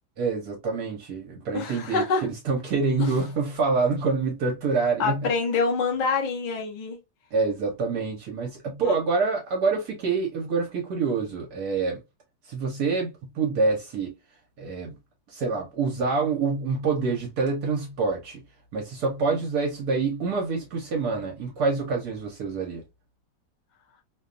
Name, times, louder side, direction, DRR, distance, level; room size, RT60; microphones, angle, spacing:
voice 1, 0.2-5.3 7.3-12.0 12.5-14.1 14.6-14.9 15.3-18.4 18.7-22.8, right 4 dB, 70° right, 1.2 m, -26 dB
voice 2, 1.5-2.3 3.0-3.1 5.0-7.0 8.8-9.0, left 4 dB, 75° left, 0.4 m, -26 dB
2.9 x 2.2 x 2.4 m
omnidirectional pair, 1.7 m